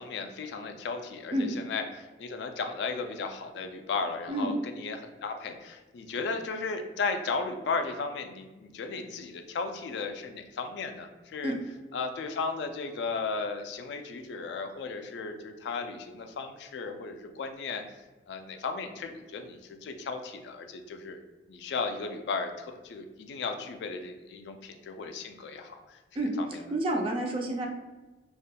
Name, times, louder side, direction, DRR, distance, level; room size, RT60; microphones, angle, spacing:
voice 1, 0.0-11.5 11.9-17.8 18.3-21.2 21.5-26.0 26.4-26.6, left 4 dB, 70° left, 6 dB, 0.3 m, -35 dB
voice 2, 26.7-27.7, right 1 dB, 30° right, 1 dB, 0.3 m, -29 dB
2.3 x 2.2 x 2.7 m, 1.2 s
head